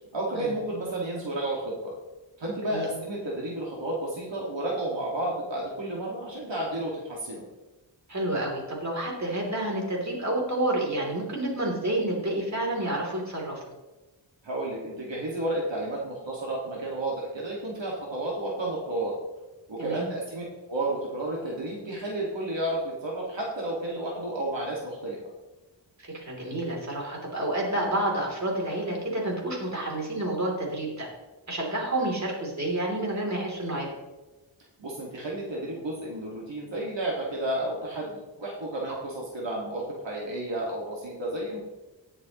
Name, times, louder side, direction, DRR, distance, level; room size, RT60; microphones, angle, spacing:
voice 1, 0.1-1.9 2.4-7.5 14.4-19.2 19.7-25.2 34.8-41.6, right 1 dB, 70° right, -4 dB, 2.0 m, -32 dB
voice 2, 8.1-13.6 19.8-20.1 26.0-31.1 31.5-33.9, right 1 dB, 35° right, -2 dB, 3.1 m, -29 dB
18.5 x 6.7 x 3.0 m, 1.1 s
wide cardioid pair, 95°, 45 cm